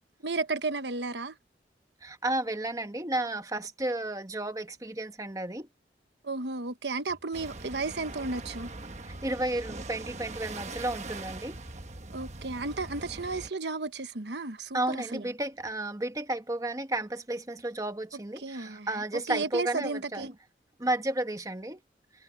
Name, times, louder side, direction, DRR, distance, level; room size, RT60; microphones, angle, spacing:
voice 1, 0.2-1.3 6.2-8.7 12.1-15.2 18.4-18.9 19.1-20.3, right 3 dB, 80° right, 1.2 m, -33 dB
voice 2, 2.0-5.7 9.2-11.6 14.7-20.3 20.8-21.8, right 1 dB, 20° right, 1.2 m, -32 dB
sound 1, 7.3-13.5, right 2 dB, 40° right, 1.2 m, -41 dB
head